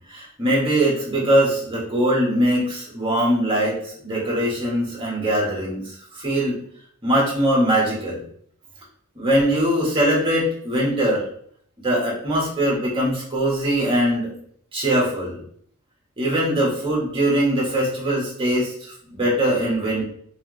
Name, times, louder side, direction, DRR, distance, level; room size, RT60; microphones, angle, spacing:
voice 1, 0.1-6.6 7.0-8.2 9.1-11.2 11.8-14.3 14.7-15.4 16.2-20.0, right 1 dB, 25° right, -4 dB, 1.5 m, -21 dB
3.4 x 3.2 x 3.2 m, 0.62 s
head